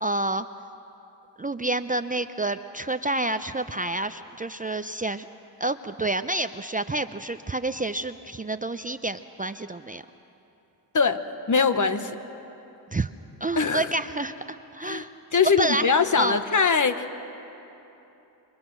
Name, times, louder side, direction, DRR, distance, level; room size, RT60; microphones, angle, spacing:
voice 1, 0.0-0.5 1.4-5.3 5.6-10.0 12.9-13.1 13.4-15.1 15.6-16.4, right 2 dB, 20° right, 10 dB, 0.6 m, -29 dB
voice 2, 10.9-12.1 13.6-13.9 14.8-15.0 15.3-17.2, left 5 dB, 45° left, 9 dB, 1.3 m, -22 dB
28.0 x 22.5 x 6.2 m, 3.0 s
cardioid pair, 65°, 44 cm